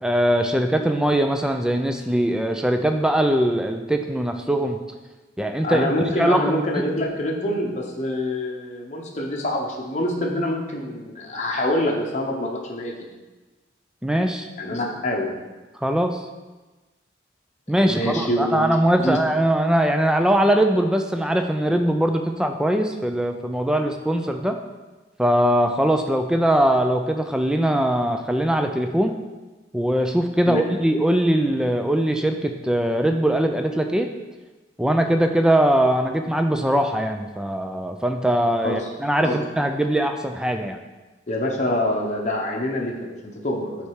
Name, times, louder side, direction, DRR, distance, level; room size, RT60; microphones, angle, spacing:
voice 1, 0.0-4.8 5.4-5.9 6.2-6.8 14.0-14.5 15.8-16.2 17.7-24.6 25.2-29.2 29.7-34.1 34.8-40.8, right 1 dB, 5° right, 5 dB, 0.3 m, -21 dB
voice 2, 5.6-13.1 14.6-15.3 17.8-18.7 19.0-19.2 30.4-30.6 38.6-38.9 39.2-39.4 41.3-43.9, left 1 dB, 40° left, -1 dB, 0.9 m, -25 dB
8.0 x 3.3 x 4.8 m, 1.2 s
head